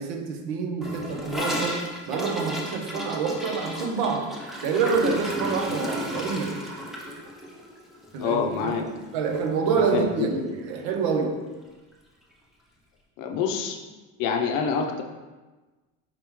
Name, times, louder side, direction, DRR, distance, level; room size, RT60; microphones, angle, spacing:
voice 1, 0.0-4.4 4.6-6.7 8.1-11.5, right 5 dB, 80° right, 4 dB, 0.7 m, -27 dB
Gurgling / Toilet flush, 0.8-9.1 9.3-9.5 9.8-10.2 10.5-10.6 10.9-11.0 11.9-12.0, equal, ahead, 0.4 m, -33 dB
voice 2, 8.2-8.8 9.7-10.3 13.2-13.8 14.2-15.0, left 6 dB, 60° left, 3 dB, 0.6 m, -26 dB
5.0 x 3.0 x 3.5 m, 1.2 s
cardioid pair, 145°, 36 cm